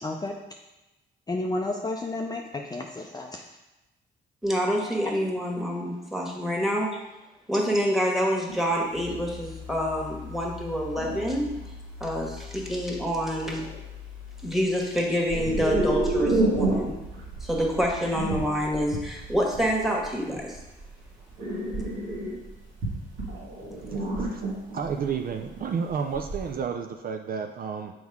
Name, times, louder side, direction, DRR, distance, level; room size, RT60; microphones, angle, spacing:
voice 1, 0.0-0.3 1.3-3.4 5.0-5.1, left 2 dB, 20° left, 1 dB, 0.5 m, -31 dB
voice 2, 4.4-6.9 7.5-11.5 12.0-13.6 14.4-17.0 17.4-20.6, equal, ahead, -1 dB, 1.5 m, -27 dB
sound 1, 8.5-8.6 9.1-9.3 10.0-10.1 11.0-11.6 13.0-13.1 13.4-13.8 15.3-26.5, right 2 dB, 80° right, 2.1 m, -30 dB
sound 2, 8.9-18.0, left 7 dB, 70° left, 0.7 m, -44 dB
voice 3, 23.9-24.4 24.7-27.9, right 6 dB, 45° right, 4 dB, 0.5 m, -31 dB
6.3 x 4.6 x 3.6 m, 1.0 s
cardioid pair, 90°, 20 cm